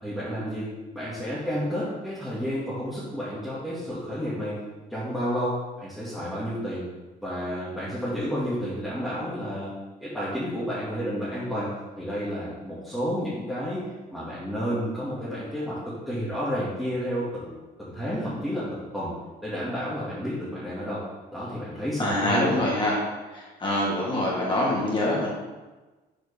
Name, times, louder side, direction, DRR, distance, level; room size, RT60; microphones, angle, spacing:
voice 1, 0.0-4.6 4.9-6.9 7.2-9.7 10.0-11.7 12.0-13.8 14.1-19.1 19.4-21.0 21.3-22.6, equal, ahead, -11 dB, 2.2 m, -31 dB
voice 2, 22.0-23.0 23.3-25.3, left 1 dB, 30° left, -5 dB, 2.1 m, -25 dB
7.1 x 4.3 x 5.4 m, 1.2 s
cardioid pair, 110°, 17 cm